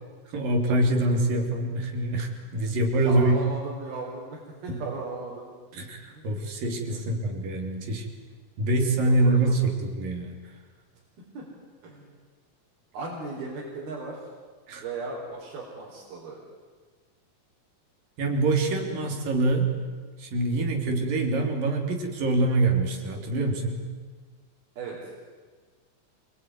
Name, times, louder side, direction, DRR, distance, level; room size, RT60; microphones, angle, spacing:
voice 1, 0.3-3.4 4.7-4.8 5.7-8.1 8.6-10.4 14.7-14.8 18.2-19.7 20.2-23.9, right 2 dB, 70° right, 3 dB, 5.0 m, -25 dB
voice 2, 2.5-5.5 6.1-6.3 6.8-7.0 8.9-9.7 11.3-11.4 11.8-12.1 12.9-14.2 14.8-16.4 24.8-25.1, right 3 dB, 90° right, -4 dB, 6.2 m, -37 dB
28.0 x 22.0 x 9.7 m, 1.5 s
omnidirectional pair, 4.2 m